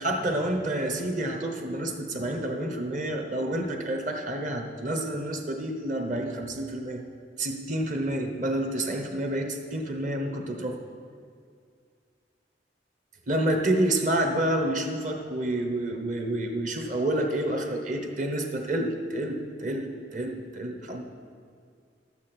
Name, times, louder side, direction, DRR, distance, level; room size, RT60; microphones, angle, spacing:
voice 1, 0.0-7.0 7.4-10.8 13.3-21.0, right 1 dB, 45° right, 4 dB, 1.1 m, -29 dB
12.5 x 8.7 x 4.4 m, 2.2 s
head